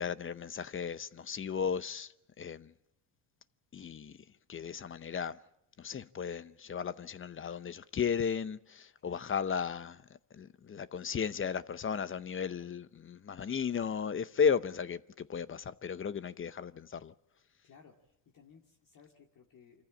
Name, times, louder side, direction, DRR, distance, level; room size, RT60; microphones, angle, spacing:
voice 1, 0.0-2.7 3.7-4.2 4.5-5.4 5.8-10.0 10.3-17.1, left 7 dB, 30° left, 0.7 m, -35 dB
voice 2, 9.0-9.4 17.6-19.8, left 6 dB, 45° left, 2.4 m, -60 dB
25.5 x 14.5 x 8.7 m
supercardioid pair, 90°, 44 cm